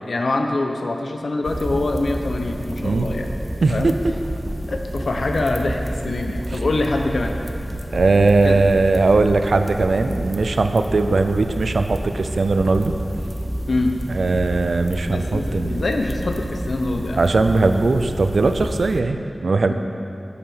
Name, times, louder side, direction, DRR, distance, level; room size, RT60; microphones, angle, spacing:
voice 1, 0.0-3.3 3.7-3.9 4.7-7.3 8.4-8.6 13.7-13.9 15.1-17.2, left 2 dB, 85° left, 4 dB, 1.0 m, -24 dB
sound 1, 1.4-19.0, right 1 dB, 10° right, 0.8 m, -29 dB
voice 2, 3.6-3.9 7.9-12.9 14.1-15.8 17.2-19.7, right 3 dB, 90° right, 7 dB, 0.6 m, -19 dB
9.7 x 8.1 x 6.7 m, 2.6 s
wide cardioid pair, 75°, 0 cm